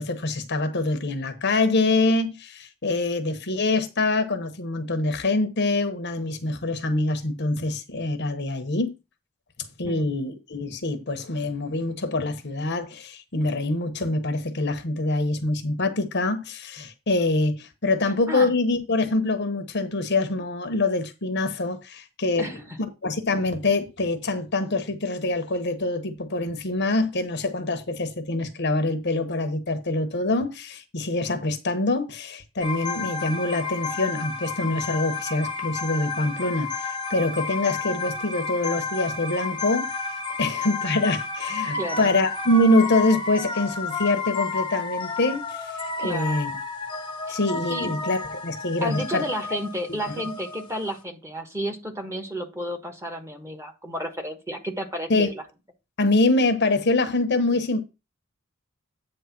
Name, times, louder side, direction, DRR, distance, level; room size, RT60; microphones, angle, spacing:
voice 1, 0.0-8.9 9.8-22.5 23.0-39.9 40.4-45.7 46.0-46.5 47.3-49.2 55.1-55.3 56.0-57.8, left 2 dB, 55° left, 1.0 m, -25 dB
voice 2, 22.4-22.8 41.7-42.1 46.0-46.4 47.7-48.0 48.8-55.4, equal, 15° right, 1.3 m, -32 dB
sound 1, 32.6-51.0, left 4 dB, 20° left, 1.0 m, -31 dB
8.8 x 3.3 x 5.9 m
head